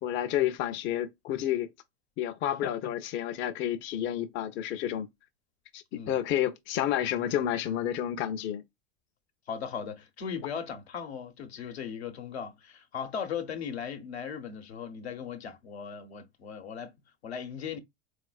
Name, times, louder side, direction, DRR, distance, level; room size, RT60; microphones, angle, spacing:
voice 1, 0.0-1.7 2.2-5.1 5.7-8.6, left 11 dB, 35° left, 0.6 m, -30 dB
voice 2, 2.6-2.9 5.9-6.2 9.5-16.9 17.2-17.8, left 7 dB, 80° left, 1.0 m, -38 dB
3.9 x 2.5 x 2.3 m
hypercardioid pair, 90°, 32 cm